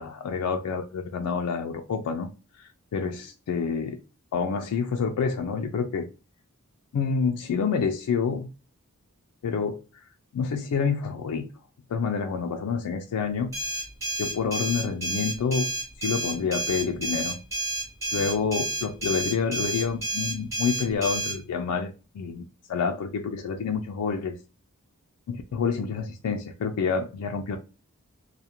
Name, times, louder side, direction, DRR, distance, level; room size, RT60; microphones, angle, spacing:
voice 1, 0.0-2.3 2.6-4.0 4.3-6.1 6.9-8.5 9.4-10.0 10.3-11.5 11.9-13.5 14.2-17.4 18.1-24.4 25.3-27.6, left 5 dB, 85° left, 0.3 m, -28 dB
sound 1, 13.5-21.4, right 2 dB, 15° right, 1.1 m, -30 dB
2.3 x 2.1 x 2.8 m
head